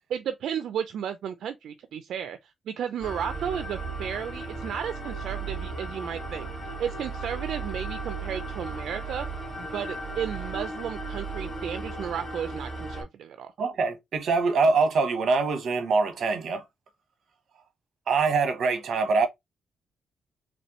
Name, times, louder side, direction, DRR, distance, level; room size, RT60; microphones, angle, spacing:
voice 1, 0.1-9.3 9.6-13.5, right 8 dB, 80° right, 0.4 m, -34 dB
sound 1, 3.0-13.0, right 3 dB, 10° left, 2.1 m, -35 dB
voice 2, 13.6-16.6 18.1-19.3, right 4 dB, 60° right, 1.0 m, -24 dB
4.3 x 3.2 x 3.0 m
wide cardioid pair, 145°, 0 cm